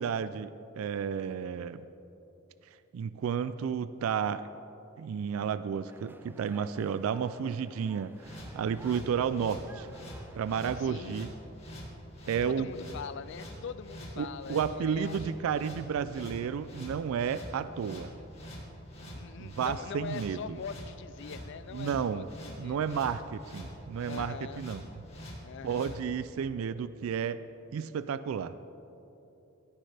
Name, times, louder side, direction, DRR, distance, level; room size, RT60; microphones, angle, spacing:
voice 1, 0.0-1.8 2.9-4.5 5.0-9.9 10.3-11.3 12.3-12.7 14.2-18.1 19.4-20.6 21.7-22.3 22.6-24.8 25.6-27.4 27.7-28.5, right 7 dB, 90° right, 14 dB, 0.3 m, -32 dB
sound 1, 5.9-10.9, right 2 dB, 10° right, 0.3 m, -54 dB
sound 2, 8.1-25.9, equal, 30° left, 2.1 m, -45 dB
voice 2, 10.8-11.2 12.4-15.5 19.1-23.0 24.0-24.6 25.4-26.0, left 6 dB, 60° left, 15 dB, 0.4 m, -43 dB
16.5 x 9.6 x 3.4 m, 2.9 s
head